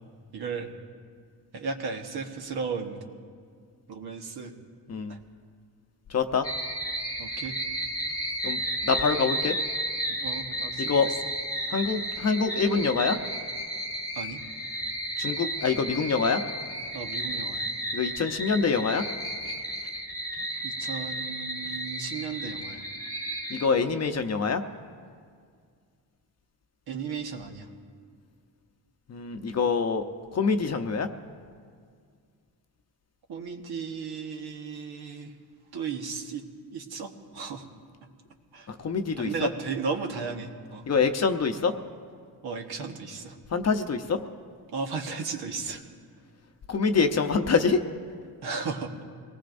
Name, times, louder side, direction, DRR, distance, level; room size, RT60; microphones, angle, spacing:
voice 1, 0.3-0.7 1.5-3.0 3.9-4.5 5.1-5.2 7.2-7.6 10.1-11.1 12.0-12.1 14.1-14.4 16.9-17.7 20.6-22.8 26.9-27.7 33.3-35.3 35.7-36.4 36.7-37.6 38.5-38.7 39.2-40.8 42.4-43.4 44.7-45.8 48.4-48.9, right 5 dB, 65° right, 4 dB, 1.4 m, -35 dB
voice 2, 6.1-6.4 8.4-9.5 10.8-11.1 11.7-13.2 15.2-16.4 17.9-19.0 23.5-24.6 29.1-30.0 30.3-31.1 38.7-39.5 40.9-41.7 43.5-44.2 46.7-47.8, left 5 dB, 40° left, 7 dB, 0.8 m, -25 dB
sound 1, 6.4-23.7, right 1 dB, 10° left, 1.3 m, -33 dB
24.5 x 18.5 x 2.6 m, 2.1 s
cardioid pair, 105°, 41 cm